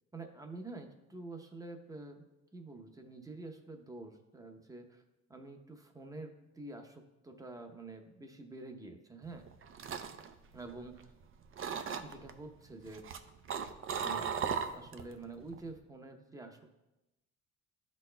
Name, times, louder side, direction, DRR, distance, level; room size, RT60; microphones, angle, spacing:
voice 1, 0.1-2.2 2.5-5.0 5.3-9.4 10.5-11.1 12.0-13.1 14.0-16.8, right 2 dB, 10° right, 5 dB, 0.8 m, -48 dB
sound 1, 9.4-11.2 11.6-12.3 12.9-15.1 15.4-15.8, right 7 dB, 45° right, 0.5 m, -37 dB
11.5 x 4.2 x 2.2 m, 0.99 s
cardioid pair, 90°, 30 cm